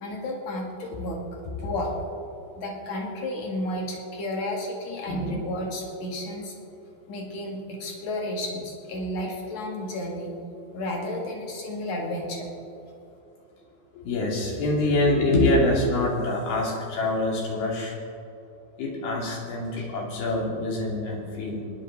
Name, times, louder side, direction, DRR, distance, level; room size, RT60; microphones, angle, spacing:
voice 1, 0.0-1.2 1.6-1.9 2.6-6.5 7.1-10.3 10.7-12.5, left 1 dB, 50° left, 0 dB, 2.7 m, -32 dB
voice 2, 5.1-5.4 14.0-17.9 18.8-21.6, left 2 dB, 85° left, -2 dB, 4.5 m, -25 dB
22.5 x 10.5 x 3.9 m, 2.8 s
omnidirectional pair, 4.4 m